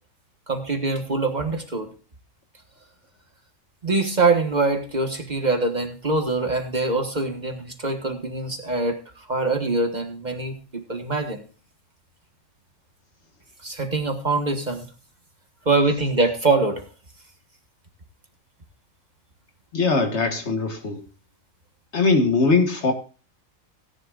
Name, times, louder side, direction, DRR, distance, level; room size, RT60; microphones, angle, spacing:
voice 1, 0.5-1.9 3.8-11.4 13.6-14.9 15.6-16.9, right 3 dB, 35° right, 1.5 m, -24 dB
voice 2, 19.7-21.0 21.9-22.9, left 4 dB, 60° left, 1.7 m, -21 dB
17.0 x 11.0 x 2.4 m
omnidirectional pair, 1.3 m